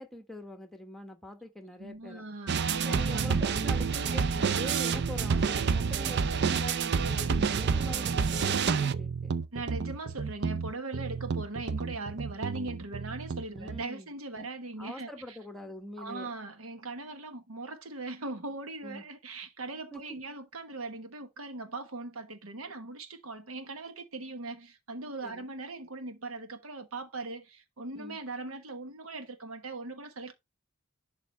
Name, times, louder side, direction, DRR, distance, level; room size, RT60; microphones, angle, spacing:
voice 1, 0.0-2.3 2.8-9.4 13.5-14.1 14.3-14.5 14.8-16.3 18.8-19.0 19.9-20.2 25.2-25.4 28.0-28.2, left 1 dB, ahead, 1.1 m, -44 dB
voice 2, 1.8-3.6 9.5-15.4 16.0-30.3, right 2 dB, 85° right, 1.2 m, -40 dB
sound 1, 2.5-13.8, right 5 dB, 55° right, 0.5 m, -29 dB
11.0 x 3.8 x 3.2 m
head